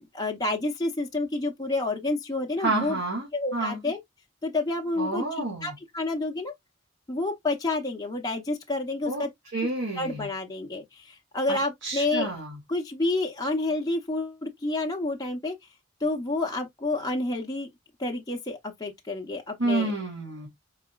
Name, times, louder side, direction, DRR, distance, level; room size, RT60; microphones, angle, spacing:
voice 1, 0.0-3.0 3.3-4.0 4.4-6.5 7.1-9.3 10.0-12.3 12.7-15.6 16.0-17.7 18.0-19.9, left 2 dB, 20° left, 0.7 m, -29 dB
voice 2, 2.6-3.8 5.0-5.7 9.1-9.2 9.5-10.3 11.5-12.6 19.6-20.5, right 2 dB, 85° right, 2.1 m, -29 dB
4.8 x 4.1 x 2.3 m
head